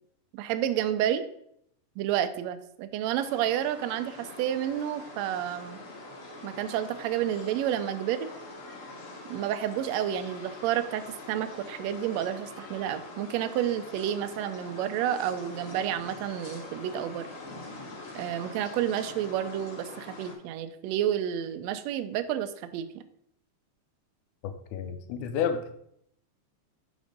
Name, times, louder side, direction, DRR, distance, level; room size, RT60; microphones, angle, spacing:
voice 1, 0.3-1.2 2.0-5.8 6.4-8.3 9.3-17.3 18.1-23.0, right 11 dB, 80° right, 11 dB, 1.6 m, -30 dB
sound 1, 3.1-20.3, left 2 dB, 55° left, 2.0 m, -44 dB
voice 2, 24.4-25.7, left 7 dB, 85° left, 9 dB, 2.1 m, -31 dB
5.2 x 5.0 x 5.1 m, 0.71 s
omnidirectional pair, 3.4 m